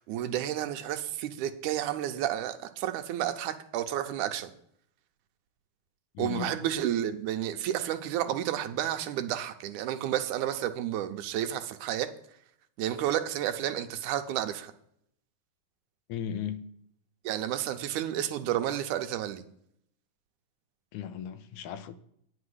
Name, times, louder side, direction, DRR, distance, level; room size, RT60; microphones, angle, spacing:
voice 1, 0.0-4.5 6.2-12.1 12.8-14.7 17.2-19.4, right 11 dB, 85° right, 2.3 m, -31 dB
voice 2, 6.1-6.6 16.1-16.6 20.9-22.0, left 9 dB, 85° left, 2.2 m, -36 dB
9.8 x 5.9 x 8.0 m
omnidirectional pair, 3.5 m